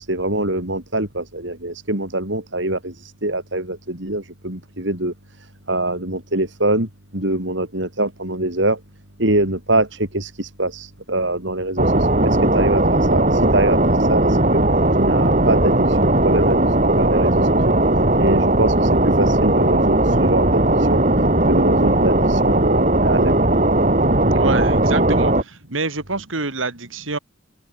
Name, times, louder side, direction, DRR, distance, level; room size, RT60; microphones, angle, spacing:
voice 1, 0.0-5.1 5.7-8.8 9.2-14.6 15.0-17.7 18.2-21.0 21.5-23.6, right 1 dB, 65° right, 6.0 m, -24 dB
sound 1, 11.8-25.4, right 1 dB, 40° right, 4.1 m, -17 dB
voice 2, 24.3-27.2, right 3 dB, 85° right, 3.2 m, -26 dB
open air
head